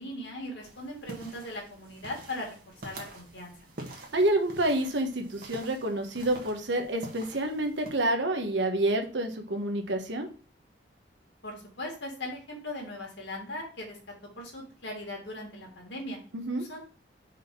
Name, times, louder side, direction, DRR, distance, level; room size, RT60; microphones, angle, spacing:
voice 1, 0.0-3.5 11.4-14.0 14.3-16.2 16.6-16.8, left 1 dB, 70° left, 0 dB, 2.3 m, -39 dB
sound 1, 0.6-7.9, right 2 dB, 55° right, 1.5 m, -46 dB
voice 2, 4.1-10.3 16.3-16.6, right 1 dB, 75° right, 4 dB, 1.2 m, -28 dB
5.1 x 4.2 x 5.3 m, 0.38 s
head